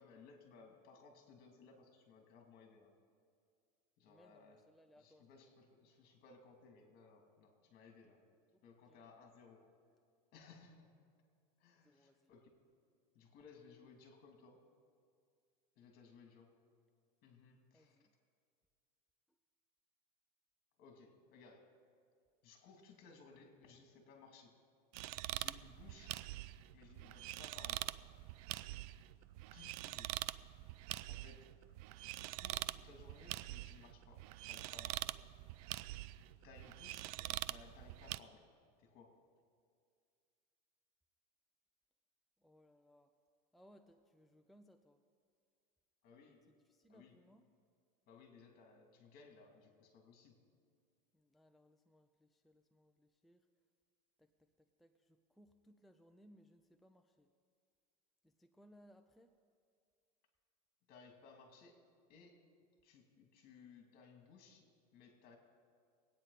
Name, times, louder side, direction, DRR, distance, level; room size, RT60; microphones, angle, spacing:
voice 1, 0.0-3.0 4.0-4.6 5.0-8.3 8.6-9.7 10.3-10.9 11.6-12.5 13.1-14.6 15.8-16.5 17.2-18.0 20.8-21.7 22.4-24.6 25.3-26.2 26.7-27.9 29.5-30.2 31.1-31.5 32.1-35.3 36.4-38.5 38.8-39.3 46.0-46.5 46.9-47.1 48.1-50.4 60.9-61.8 62.1-62.5 62.8-65.4, left 4 dB, 50° left, 3 dB, 2.7 m, -61 dB
voice 2, 4.1-5.5 8.5-9.1 11.8-12.3 17.7-18.1 37.0-37.5 42.4-43.1 43.5-45.0 46.3-47.5 51.1-53.5 54.2-57.3 58.2-59.3, equal, ahead, 6 dB, 0.5 m, -67 dB
sound 1, 24.9-38.2, right 17 dB, 65° right, 0.4 m, -45 dB
22.5 x 9.2 x 4.1 m, 2.2 s
supercardioid pair, 125°, 20 cm